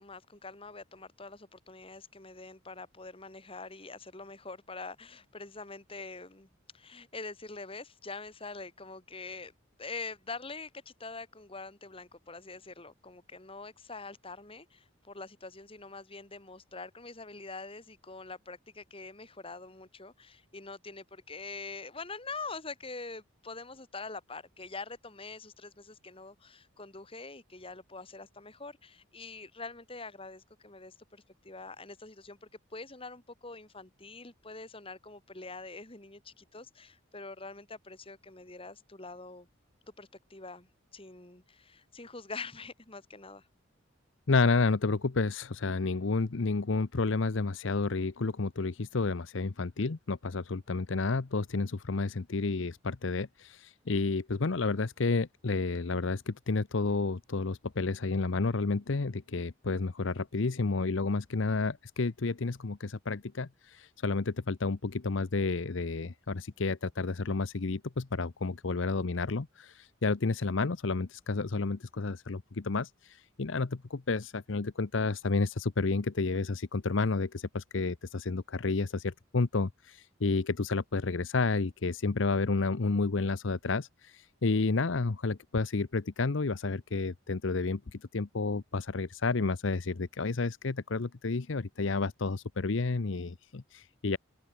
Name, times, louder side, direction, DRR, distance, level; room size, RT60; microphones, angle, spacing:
voice 1, 0.0-6.5 6.7-9.5 9.8-39.5 40.0-43.5, left 3 dB, 25° left, 2.6 m, -44 dB
voice 2, 44.3-94.2, left 3 dB, 70° left, 0.8 m, -31 dB
open air
head